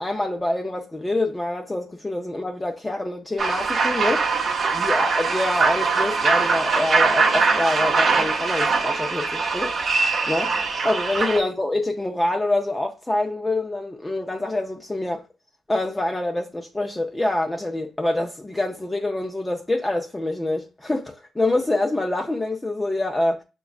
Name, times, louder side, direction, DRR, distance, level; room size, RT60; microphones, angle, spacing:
voice 1, 0.0-4.3 4.7-9.8 10.3-10.5 10.8-15.2 15.7-23.4, left 2 dB, 15° left, 0.5 m, -26 dB
sound 1, 3.4-11.4, right 4 dB, 45° right, 0.6 m, -22 dB
5.7 x 2.2 x 2.3 m
cardioid pair, 90°, 0 cm